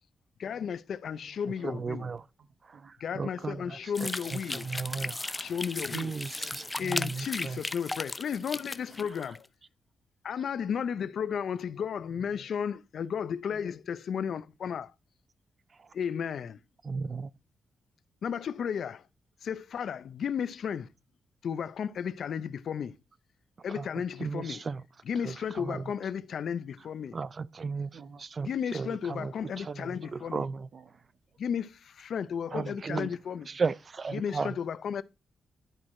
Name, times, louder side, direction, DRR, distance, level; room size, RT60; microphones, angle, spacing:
voice 1, 0.4-2.1 3.0-4.7 5.4-6.2 6.8-9.5 10.2-14.9 15.9-16.6 18.2-19.0 19.4-20.9 21.4-23.0 23.6-24.6 25.0-27.2 28.5-30.4 31.4-33.5 34.1-35.0, left 7 dB, 70° left, 0.5 m, -34 dB
voice 2, 1.1-3.5 4.0-4.7 6.4-7.5 8.4-8.6 27.9-28.5 28.8-30.4 30.7-31.7 32.8-33.6, right 5 dB, 60° right, 0.8 m, -57 dB
voice 3, 1.6-2.2 2.7-2.8 3.1-5.5 5.9-7.6 15.8-15.9 16.8-17.3 23.7-23.9 24.2-24.8 25.2-25.9 27.1-27.9 28.4-30.7 32.5-33.1 33.5-34.6, right 4 dB, 40° right, 0.4 m, -35 dB
sound 1, 3.9-9.4, left 2 dB, 20° left, 0.5 m, -36 dB
11.0 x 4.6 x 4.3 m
cardioid pair, 105°, 0 cm